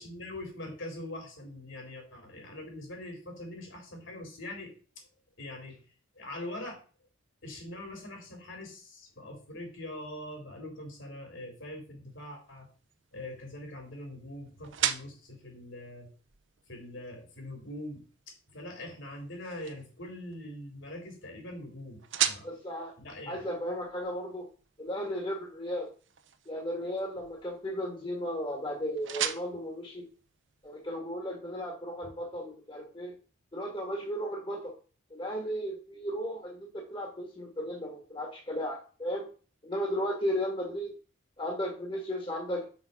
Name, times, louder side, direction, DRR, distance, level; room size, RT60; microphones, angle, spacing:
voice 1, 0.0-4.7 5.4-5.8 6.2-6.8 7.4-12.7 13.1-16.1 16.7-18.0 18.5-22.0 22.3-22.5 23.0-23.4, left 1 dB, 65° left, 2 dB, 3.7 m, -43 dB
sound 1, 12.1-30.9, right 10 dB, 60° right, 0.8 m, -40 dB
voice 2, 22.4-22.9 23.3-24.5 24.8-25.9 26.4-30.1 30.6-33.1 33.5-34.7 35.1-39.3 39.6-40.9 41.4-42.7, equal, 25° left, 0 dB, 1.5 m, -35 dB
6.5 x 5.9 x 5.7 m, 0.38 s
head